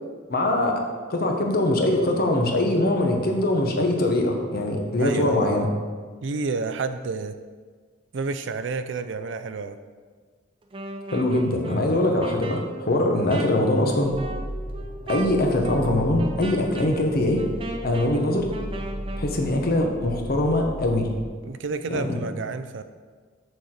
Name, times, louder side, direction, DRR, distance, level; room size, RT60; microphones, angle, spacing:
voice 1, 0.3-0.8 1.1-5.7 11.1-14.2 15.1-17.4 17.8-18.5 19.2-21.1 21.9-22.2, left 1 dB, 55° left, 2 dB, 1.0 m, -22 dB
voice 2, 5.0-5.6 6.2-7.4 8.1-9.8 21.4-22.8, right 4 dB, 70° right, 10 dB, 0.5 m, -30 dB
Wind instrument woodwind instrument, 10.6-19.4, right 1 dB, 30° right, 0.7 m, -37 dB
sound 1, 14.0-21.3, equal, 20° left, 1.1 m, -36 dB
6.5 x 4.2 x 6.4 m, 1.5 s
head